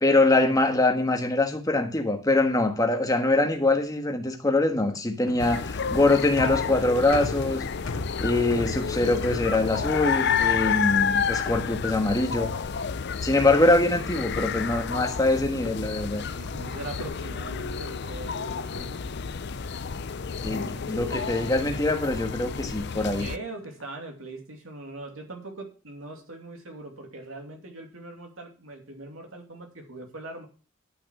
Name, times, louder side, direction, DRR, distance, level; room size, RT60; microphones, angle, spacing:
voice 1, 0.0-7.6 8.2-12.5 13.2-16.2 20.4-23.3, left 2 dB, 15° left, 1.5 m, -23 dB
sound 1, 4.8-12.3 13.4-13.9 14.2-16.6 16.9-18.2 18.7-20.4 20.8-21.3 21.5-21.9 22.6-23.0 23.5-23.8, left 3 dB, 85° left, 0.9 m, -41 dB
sound 2, 5.4-23.4, left 6 dB, 55° left, 0.5 m, -30 dB
voice 2, 16.3-19.2 20.6-21.3 22.9-30.5, right 2 dB, 80° right, 2.7 m, -41 dB
11.5 x 6.1 x 6.1 m
head